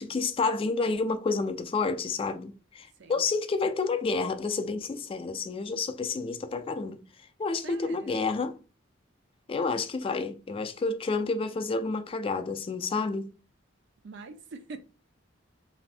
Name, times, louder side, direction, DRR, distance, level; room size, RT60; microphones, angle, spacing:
voice 1, 0.0-7.0 7.4-8.5 9.5-13.3, left 4 dB, 30° left, 0.3 m, -29 dB
voice 2, 7.6-8.3 14.0-14.8, right 4 dB, 65° right, 0.4 m, -44 dB
3.3 x 2.6 x 2.5 m
head